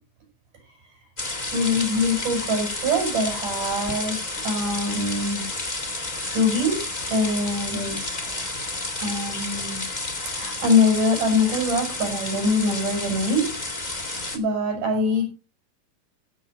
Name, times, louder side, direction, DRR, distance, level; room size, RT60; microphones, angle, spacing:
sound 1, 1.2-14.4, left 2 dB, 25° left, 1.0 m, -31 dB
voice 1, 1.5-4.2 4.4-5.5 6.3-8.6 9.0-9.8 10.3-15.2, left 2 dB, 65° right, 3 dB, 7.9 m, -24 dB
15.5 x 6.5 x 5.0 m, 0.30 s
omnidirectional pair, 3.9 m